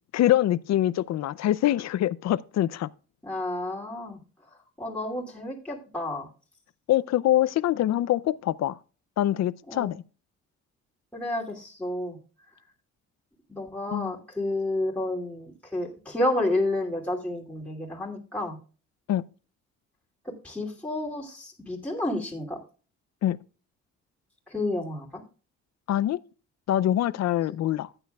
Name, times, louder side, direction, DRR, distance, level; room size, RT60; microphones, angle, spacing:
voice 1, 0.1-2.9 6.9-8.8 9.2-10.0 13.9-14.1 19.1-19.2 23.2-23.4 25.9-26.2 26.7-27.9, left 13 dB, 60° left, 0.5 m, -24 dB
voice 2, 3.2-4.2 4.8-6.3 9.7-9.9 11.1-12.2 13.5-18.6 20.2-22.6 24.5-25.2, left 1 dB, 5° left, 2.8 m, -30 dB
14.5 x 8.9 x 2.3 m
cardioid pair, 90°, 30 cm